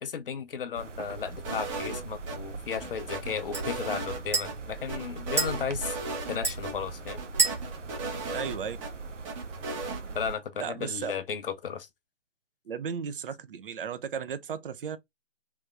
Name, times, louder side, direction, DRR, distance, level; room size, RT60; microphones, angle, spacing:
voice 1, 0.0-6.0 6.3-7.2 10.1-11.9, left 7 dB, 50° left, 0.6 m, -34 dB
sound 1, 0.7-10.4, right 4 dB, 85° right, 0.8 m, -40 dB
sound 2, 1.3-9.1, right 3 dB, 5° right, 0.8 m, -35 dB
sound 3, 1.4-2.4 2.7-4.5 4.9-6.4 6.6-6.7 7.1-8.9 9.2-10.0, right 3 dB, 25° right, 1.1 m, -36 dB
voice 2, 8.3-8.8 10.6-11.1 12.7-15.0, right 7 dB, 50° right, 0.7 m, -35 dB
3.4 x 3.0 x 2.4 m
figure-of-eight pair, 135°, 36 cm